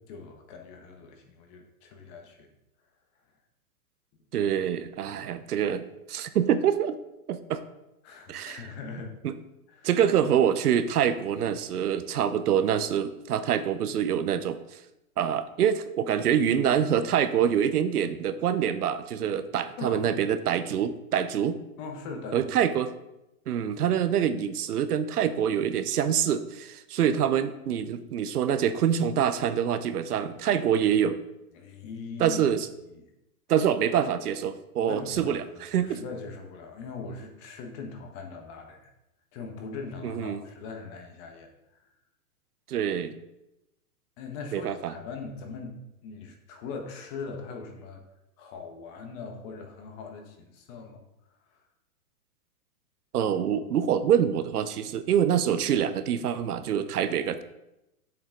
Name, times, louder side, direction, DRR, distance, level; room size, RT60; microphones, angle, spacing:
voice 1, 0.1-2.5 8.0-9.2 9.7-9.9 19.8-20.1 21.8-22.5 31.5-32.4 32.9-33.0 34.8-38.9 39.3-41.5 44.2-48.0 48.4-51.0, left 4 dB, 30° left, 3 dB, 1.4 m, -40 dB
voice 2, 4.3-7.0 7.3-7.6 8.3-8.6 9.2-9.3 9.8-14.6 15.2-21.6 22.3-22.9 23.5-31.2 32.2-32.7 33.5-36.0 40.0-40.4 42.7-43.1 44.5-44.9 53.1-57.4, right 9 dB, 80° right, 11 dB, 0.9 m, -25 dB
7.8 x 7.2 x 3.9 m, 0.91 s
hypercardioid pair, 145°, 44 cm